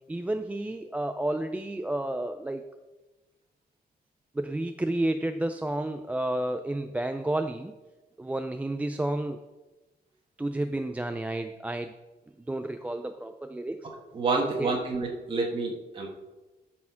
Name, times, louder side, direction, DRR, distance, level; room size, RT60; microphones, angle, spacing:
voice 1, 0.1-2.6 4.3-7.7 8.2-9.4 10.4-11.9 12.5-13.8 14.4-14.7, right 1 dB, 10° right, 7 dB, 0.3 m, -31 dB
voice 2, 14.1-16.1, right 3 dB, 30° right, -1 dB, 1.5 m, -28 dB
12.5 x 4.4 x 5.7 m, 1.1 s
wide cardioid pair, 160°, 17 cm